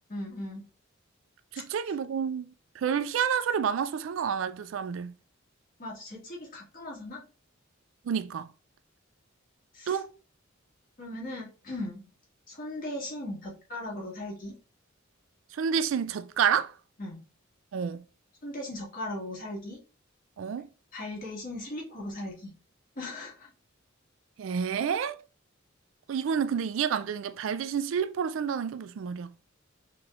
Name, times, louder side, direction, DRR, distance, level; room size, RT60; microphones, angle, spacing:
voice 1, 0.1-0.6 5.8-7.2 9.7-10.0 11.0-12.0 12.5-14.6 17.0-17.2 18.4-19.8 20.9-22.5 23.0-23.5, left 1 dB, 45° left, 1.8 m, -38 dB
voice 2, 1.5-5.1 8.0-8.5 9.9-10.1 15.5-16.7 17.7-18.0 20.4-20.7 24.4-25.2 26.1-29.3, right 7 dB, 65° right, 0.3 m, -29 dB
5.8 x 3.2 x 2.4 m
head